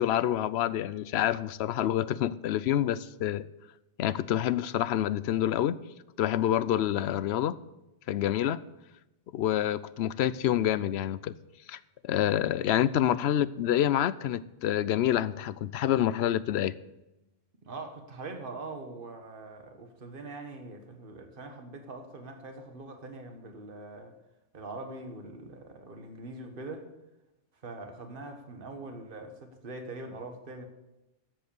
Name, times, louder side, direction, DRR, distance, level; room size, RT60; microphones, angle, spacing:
voice 1, 0.0-3.4 4.0-5.8 6.2-7.6 8.1-8.6 9.3-11.3 11.7-11.8 12.0-16.8, left 11 dB, 65° left, 0.8 m, -27 dB
voice 2, 17.6-24.2 24.5-26.9 27.6-30.7, right 2 dB, 45° right, 1.6 m, -43 dB
12.5 x 7.9 x 7.0 m
omnidirectional pair, 1.3 m